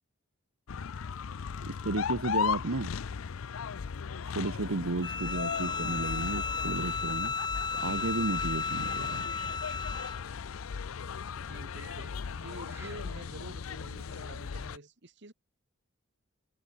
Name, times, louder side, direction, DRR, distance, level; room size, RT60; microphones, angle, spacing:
sound 1, 0.7-14.8, left 6 dB, 90° left, 0.5 m, -37 dB
voice 1, 1.6-2.9 4.3-7.3 7.7-9.5, right 2 dB, 85° right, 1.2 m, -33 dB
Bowed string instrument, 5.0-10.2, left 5 dB, 20° left, 0.6 m, -34 dB
sound 2, 8.0-14.8, right 2 dB, 15° right, 4.3 m, -59 dB
voice 2, 11.4-15.3, right 2 dB, 60° right, 2.2 m, -48 dB
head